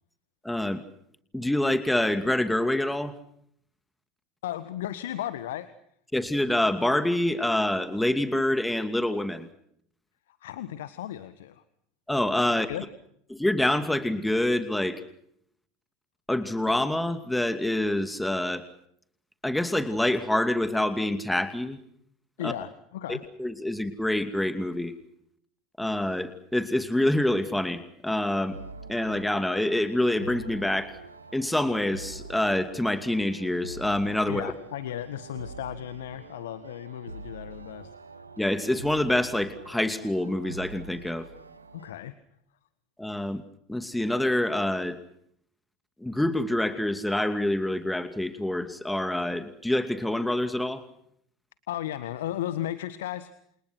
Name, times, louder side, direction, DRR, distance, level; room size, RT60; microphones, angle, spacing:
voice 1, 0.4-0.8 1.3-3.1 6.1-9.5 12.1-12.7 13.3-15.0 16.3-18.6 19.4-21.8 22.4-22.5 23.1-24.9 25.8-28.6 28.9-30.9 31.3-34.5 38.4-41.3 43.0-43.4 43.7-45.0 46.0-50.8, left 1 dB, 5° left, 10 dB, 2.6 m, -26 dB
voice 2, 4.4-5.7 10.4-11.6 12.6-12.9 22.4-23.2 34.3-37.9 41.7-42.1 51.7-53.3, left 12 dB, 70° left, 14 dB, 1.6 m, -35 dB
sound 1, 28.5-41.9, right 3 dB, 90° right, 2.3 m, -45 dB
29.0 x 29.0 x 6.1 m, 0.71 s
figure-of-eight pair, 75°, 0 cm